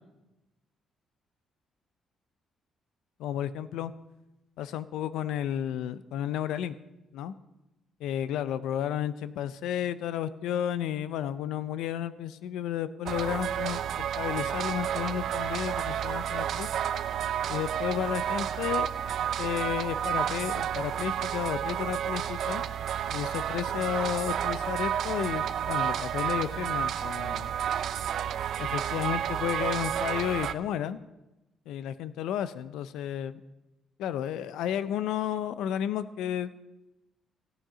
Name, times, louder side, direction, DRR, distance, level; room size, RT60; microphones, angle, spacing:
voice 1, 3.2-3.9 4.6-6.8 7.1-7.3 8.0-13.8 14.2-16.7 17.5-18.9 19.4-22.6 23.1-27.5 28.6-31.0 31.7-33.4 34.0-36.5, left 10 dB, 90° left, 15 dB, 0.5 m, -32 dB
sound 1, 13.1-30.5, right 9 dB, 70° right, 0.5 m, -31 dB
17.0 x 9.0 x 5.0 m, 0.99 s
cardioid pair, 90°, 0 cm